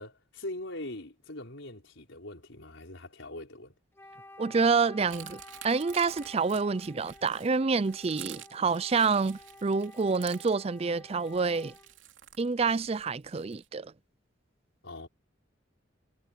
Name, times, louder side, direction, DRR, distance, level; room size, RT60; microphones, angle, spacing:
voice 1, 0.0-3.7 14.8-15.1, left 1 dB, 90° left, 4.8 m, -42 dB
Wind instrument woodwind instrument, 3.9-12.0, left 1 dB, 15° left, 1.5 m, -52 dB
voice 2, 4.4-11.7 12.4-13.9, right 4 dB, 30° right, 0.4 m, -28 dB
sound 1, 5.1-13.7, right 11 dB, 85° right, 2.9 m, -49 dB
head